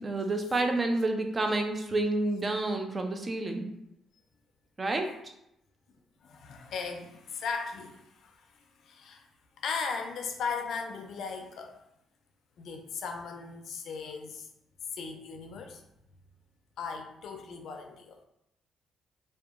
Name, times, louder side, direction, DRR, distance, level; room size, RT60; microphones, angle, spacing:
voice 1, 0.0-3.7 4.8-5.1, right 2 dB, 30° right, 4 dB, 0.4 m, -29 dB
voice 2, 6.2-9.3 9.6-11.8 12.6-14.5 14.9-15.8 16.8-18.2, left 5 dB, 70° left, 4 dB, 0.4 m, -37 dB
2.7 x 2.3 x 2.4 m, 0.82 s
cardioid pair, 90°, 0 cm